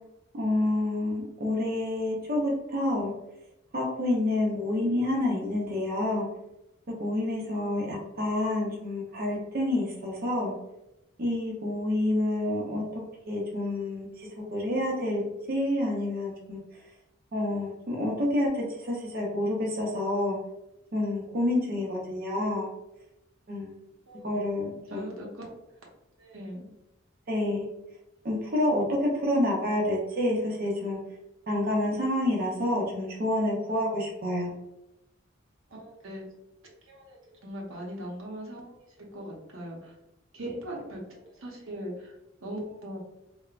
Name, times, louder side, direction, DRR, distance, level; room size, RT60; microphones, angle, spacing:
voice 1, 0.3-3.1 3.7-6.3 7.0-10.5 11.2-13.0 13.3-15.2 15.5-16.6 17.3-20.4 20.9-22.7 23.5-23.7 24.2-25.1 27.3-27.7 28.2-31.0 31.5-34.5, left 1 dB, 45° right, -3 dB, 0.5 m, -28 dB
voice 2, 24.1-24.4 24.9-25.5 26.2-26.7 35.7-36.3 36.9-38.9 39.1-39.9 40.3-42.1 42.4-43.0, right 1 dB, 85° right, -2 dB, 0.8 m, -40 dB
3.1 x 2.0 x 2.3 m, 0.91 s
head